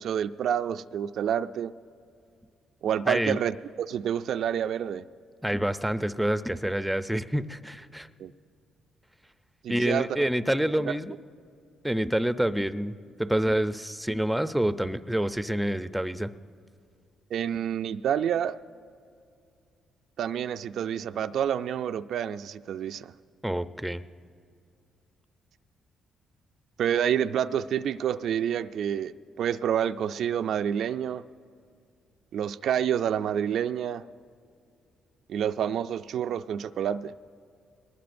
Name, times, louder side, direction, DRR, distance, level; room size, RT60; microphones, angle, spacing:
voice 1, 0.0-1.7 2.8-5.1 8.2-8.3 9.6-10.1 10.9-11.0 17.3-18.6 20.2-23.1 26.8-31.2 32.3-34.0 35.3-37.1, right 9 dB, 70° right, 10 dB, 0.3 m, -28 dB
voice 2, 3.1-3.4 5.4-8.1 9.7-11.1 11.8-16.3 23.4-24.0, right 1 dB, 5° right, 12 dB, 0.5 m, -27 dB
22.5 x 19.5 x 2.6 m, 2.4 s
cardioid pair, 90°, 0 cm